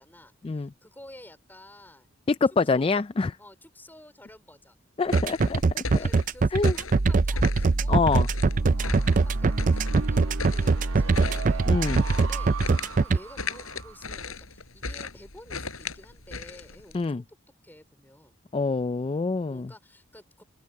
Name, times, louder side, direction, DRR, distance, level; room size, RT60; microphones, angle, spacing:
voice 1, 0.0-2.1 2.6-3.0 3.4-4.8 5.8-8.0 8.7-17.2 17.6-18.4 19.5-20.4, left 1 dB, 10° left, 4.8 m, -51 dB
voice 2, 2.3-3.3 5.0-6.1 6.5-6.8 7.9-8.3 11.7-12.0 16.9-17.2 18.5-19.7, left 4 dB, 25° left, 0.3 m, -26 dB
sound 1, 5.0-17.0, left 4 dB, 90° left, 5.4 m, -37 dB
sound 2, 5.1-13.2, right 4 dB, 40° right, 0.4 m, -22 dB
sound 3, 6.9-13.9, right 2 dB, 75° right, 0.9 m, -30 dB
head